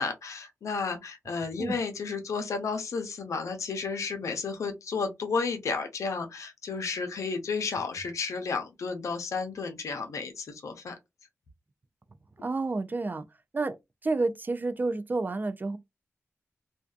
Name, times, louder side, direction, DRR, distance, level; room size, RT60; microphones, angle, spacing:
voice 1, 0.0-11.0, left 4 dB, 85° left, 0.6 m, -32 dB
voice 2, 12.4-13.2 13.5-13.8 14.0-15.8, right 3 dB, 35° right, 0.4 m, -29 dB
2.5 x 2.2 x 2.4 m
cardioid pair, 60°, 5 cm